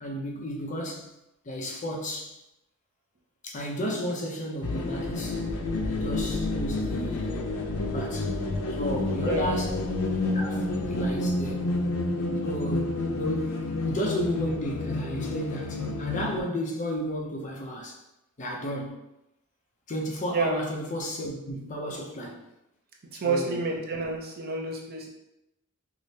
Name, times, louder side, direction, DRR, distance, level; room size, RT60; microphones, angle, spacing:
voice 1, 0.0-1.1 1.5-2.3 3.4-5.4 5.9-7.5 7.8-8.3 8.7-9.7 10.3-11.7 12.4-18.0 18.4-19.0 19.9-22.4 23.2-23.6, equal, 35° left, 0.5 m, -33 dB
sound 1, 4.6-16.4, left 2 dB, 90° left, 0.5 m, -29 dB
voice 2, 9.2-9.6 20.3-20.6 21.9-22.0 23.1-25.1, right 3 dB, 45° right, 0.6 m, -29 dB
4.8 x 2.0 x 2.7 m
head